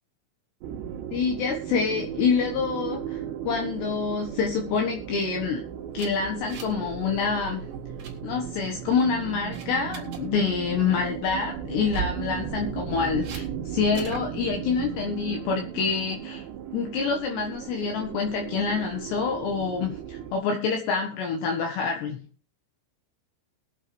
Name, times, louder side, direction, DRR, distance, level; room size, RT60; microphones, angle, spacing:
sound 1, 0.6-20.3, right 9 dB, 75° right, 3.2 m, -36 dB
voice 1, 1.1-5.6 5.9-7.7 8.2-16.4 16.7-22.2, left 5 dB, 65° left, 2 dB, 3.3 m, -27 dB
sound 2, 5.9-6.9 7.1-7.4 7.7-8.1 8.7-9.0 9.5-10.2 11.7-12.2 13.2-13.4 13.9-14.3, right 7 dB, 45° right, 2.9 m, -36 dB
21.5 x 8.3 x 3.2 m, 0.38 s
omnidirectional pair, 5.7 m